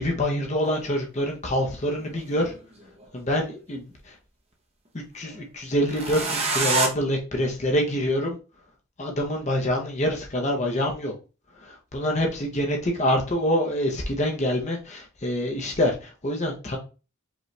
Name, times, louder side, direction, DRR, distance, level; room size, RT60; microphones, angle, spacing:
voice 1, 0.0-2.5 3.1-4.1 5.1-8.4 9.0-11.1 11.6-16.8, equal, 35° left, 0.7 m, -26 dB
sound 1, 0.6-0.7 2.0-3.0 5.8-6.9, right 3 dB, 30° right, 0.7 m, -26 dB
5.0 x 2.3 x 3.2 m
head